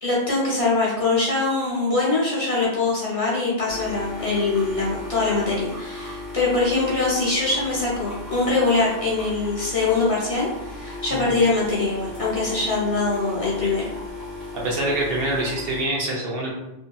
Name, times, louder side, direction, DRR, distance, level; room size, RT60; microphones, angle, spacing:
voice 1, 0.0-13.9, left 3 dB, 35° left, -6 dB, 0.7 m, -23 dB
sound 1, 3.7-15.8, left 2 dB, 50° right, 1.3 m, -36 dB
voice 2, 14.5-16.5, right 1 dB, 65° right, -3 dB, 0.8 m, -25 dB
2.7 x 2.6 x 2.2 m, 0.95 s
omnidirectional pair, 1.1 m